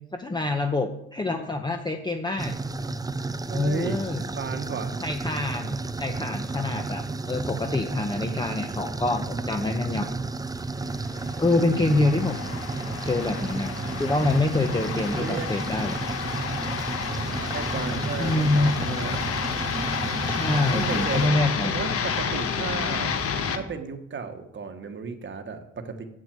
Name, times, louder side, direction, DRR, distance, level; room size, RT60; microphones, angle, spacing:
voice 1, 0.1-2.5 3.5-4.2 5.0-10.1 11.4-12.4 13.0-16.0 18.2-18.7 20.3-21.7, left 2 dB, 15° left, 5 dB, 0.9 m, -26 dB
sound 1, 2.4-21.3, right 3 dB, 10° right, 0.5 m, -32 dB
voice 2, 3.5-4.0 4.3-5.0 15.2-15.5 15.7-16.3 17.5-19.1 20.7-23.3 23.5-26.0, right 5 dB, 40° right, 6 dB, 1.3 m, -34 dB
sound 2, 11.0-23.6, left 6 dB, 50° left, 1.3 m, -30 dB
8.0 x 7.6 x 7.6 m, 0.80 s
cardioid pair, 90°, 30 cm